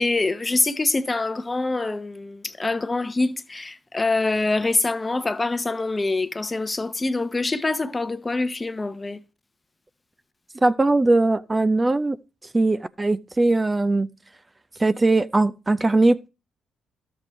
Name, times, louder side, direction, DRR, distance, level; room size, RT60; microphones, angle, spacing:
voice 1, 0.0-9.2, left 3 dB, 25° left, 0.9 m, -25 dB
voice 2, 10.6-12.2 12.5-14.1 14.8-16.3, right 2 dB, 25° right, 0.4 m, -20 dB
13.0 x 7.0 x 3.1 m
hypercardioid pair, 50°, 0 cm